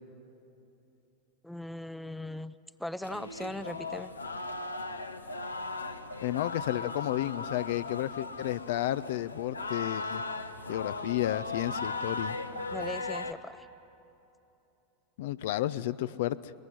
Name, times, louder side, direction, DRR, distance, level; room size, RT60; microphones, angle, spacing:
voice 1, 1.4-4.1 12.7-13.7, left 1 dB, 5° left, 14 dB, 0.6 m, -39 dB
sound 1, 3.0-13.3, left 3 dB, 85° left, 1.0 m, -37 dB
voice 2, 6.2-10.2 10.7-12.4 15.2-16.4, left 14 dB, 60° left, 14 dB, 0.5 m, -32 dB
21.5 x 20.5 x 9.9 m, 2.9 s
figure-of-eight pair, 85°, 0 cm